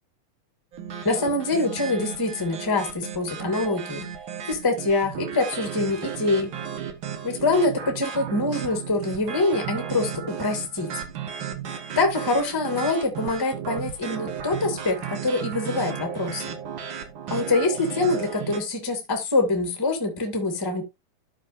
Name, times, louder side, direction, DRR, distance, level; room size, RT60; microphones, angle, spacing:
sound 1, 0.7-18.6, right 8 dB, 75° right, 1.1 m, -34 dB
voice 1, 1.0-4.1 4.5-6.5 7.2-10.9 11.9-16.5 17.3-20.8, left 2 dB, 10° left, 1.2 m, -25 dB
13.5 x 5.1 x 2.6 m
omnidirectional pair, 3.9 m